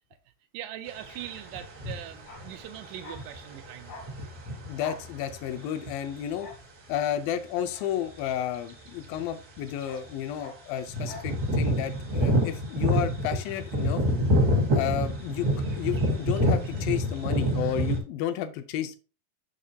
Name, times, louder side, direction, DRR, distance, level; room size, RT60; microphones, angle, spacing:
voice 1, 0.5-4.0, right 12 dB, 80° right, 2.0 m, -41 dB
sound 1, 0.9-6.5 8.3-8.4 8.7-9.2 9.6-9.7 9.8-10.1 10.9-18.0, equal, 55° right, 1.0 m, -27 dB
Bark, 2.2-9.2 9.5-11.4 11.6-11.8, left 3 dB, 60° left, 1.0 m, -48 dB
voice 2, 4.7-6.5 6.9-14.0 14.7-15.5 15.8-19.0, left 10 dB, 80° left, 2.3 m, -32 dB
6.5 x 6.1 x 2.7 m
omnidirectional pair, 4.1 m